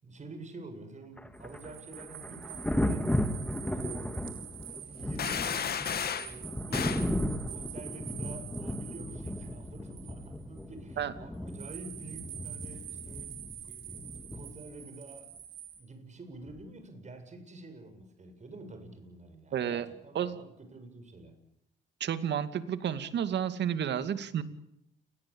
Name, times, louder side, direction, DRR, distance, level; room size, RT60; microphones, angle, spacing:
voice 1, 0.0-3.2 3.7-4.4 4.8-5.8 6.1-15.3 15.8-21.4, right 2 dB, 35° right, 7 dB, 7.9 m, -48 dB
Thunder, 1.2-14.8 16.5-16.7, left 1 dB, 5° left, 3.0 m, -35 dB
sound 1, 1.3-10.6 11.5-15.8, right 11 dB, 80° right, 5.0 m, -46 dB
sound 2, 5.2-6.3 6.7-7.1, left 8 dB, 55° left, 1.9 m, -33 dB
voice 2, 19.5-19.9 20.1-20.4 22.0-24.4, right 9 dB, 65° right, 11 dB, 2.4 m, -31 dB
29.5 x 22.0 x 8.8 m, 0.79 s
cardioid pair, 80°, 20 cm